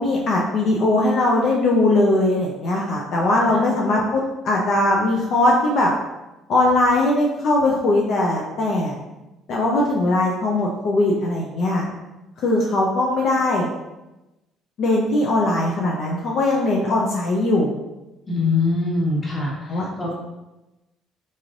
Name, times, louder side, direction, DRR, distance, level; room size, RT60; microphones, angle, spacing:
voice 1, 0.0-5.9 6.5-8.9 9.5-11.9 12.4-13.7 14.8-17.7 19.7-20.1, left 2 dB, 65° left, -2 dB, 0.5 m, -20 dB
voice 2, 18.3-20.1, left 3 dB, 30° left, -4 dB, 1.3 m, -23 dB
3.9 x 3.1 x 2.5 m, 1.0 s
cardioid pair, 100°, 0 cm